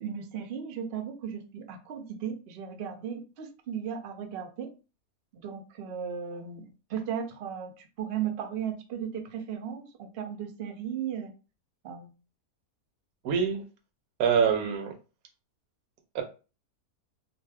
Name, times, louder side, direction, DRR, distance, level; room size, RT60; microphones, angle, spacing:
voice 1, 0.0-4.7 5.3-11.3 11.8-12.1, right 8 dB, 65° right, 0.6 m, -36 dB
voice 2, 13.2-13.6 14.2-14.9 16.1-16.2, right 7 dB, 85° right, 1.1 m, -25 dB
2.6 x 2.1 x 3.3 m
omnidirectional pair, 1.5 m